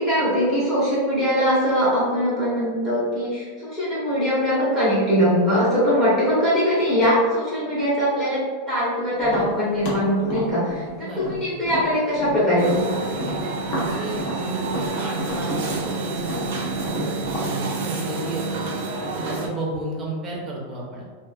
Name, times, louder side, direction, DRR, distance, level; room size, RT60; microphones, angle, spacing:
voice 1, 0.0-8.4 8.7-13.0, equal, 15° left, -11 dB, 0.9 m, -21 dB
Tap, 9.2-12.8 13.1-17.5, left 1 dB, 50° left, 0.9 m, -32 dB
voice 2, 11.0-11.4 13.3-18.7 19.1-21.2, right 1 dB, 15° right, -4 dB, 0.6 m, -33 dB
sound 1, 12.6-19.5, right 3 dB, 70° right, 0.5 m, -28 dB
2.8 x 2.5 x 2.3 m, 1.5 s
supercardioid pair, 165°, 0 cm